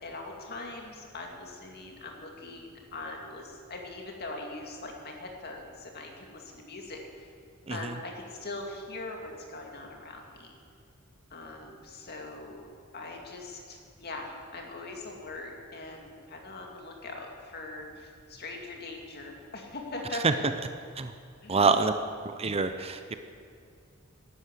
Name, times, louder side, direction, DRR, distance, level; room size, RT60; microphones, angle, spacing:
voice 1, 0.0-7.3 7.7-10.6 11.3-12.7 12.9-20.4 21.4-21.8, left 2 dB, 50° left, 1 dB, 2.4 m, -41 dB
voice 2, 21.5-21.9 22.2-23.1, right 4 dB, 30° right, 9 dB, 0.6 m, -26 dB
12.5 x 11.0 x 8.4 m, 2.3 s
head